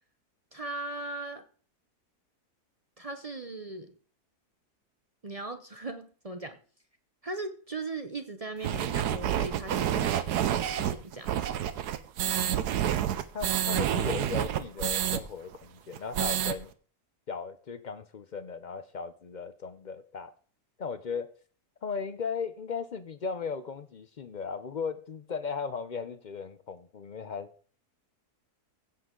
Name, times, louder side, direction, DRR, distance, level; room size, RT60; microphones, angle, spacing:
voice 1, 0.5-1.4 3.0-3.9 5.2-6.6 7.2-11.7, right 3 dB, 40° right, 8 dB, 0.5 m, -38 dB
sound 1, 8.6-15.2 15.5-15.6 15.9-16.5, right 10 dB, 85° right, 1.3 m, -28 dB
voice 2, 13.3-16.7 17.3-20.3 20.8-21.3 21.8-27.5, left 5 dB, 65° left, 12 dB, 0.4 m, -36 dB
16.0 x 7.6 x 3.8 m, 0.44 s
omnidirectional pair, 1.7 m